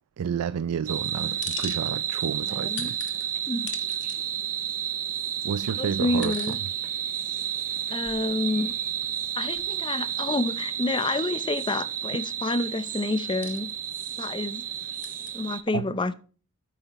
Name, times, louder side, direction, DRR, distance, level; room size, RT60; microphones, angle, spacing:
voice 1, 0.2-3.2 5.4-6.6 15.7-15.8, right 7 dB, 85° right, 0.4 m, -31 dB
sound 1, 0.9-15.6, right 10 dB, 40° right, 0.6 m, -31 dB
sound 2, 1.0-2.2 2.5-4.2 4.9-5.0 5.9-6.6 7.0-7.1 7.7-9.3 9.5-9.7 10.3-10.4 10.7-11.3 13.1-13.8 14.7-15.3, left 9 dB, 55° left, 1.2 m, -42 dB
voice 2, 2.5-2.9 3.5-3.7 5.8-6.6 7.9-8.7 9.4-13.7 14.2-14.6 15.3-16.1, left 2 dB, 20° left, 0.5 m, -28 dB
9.1 x 8.1 x 4.1 m
head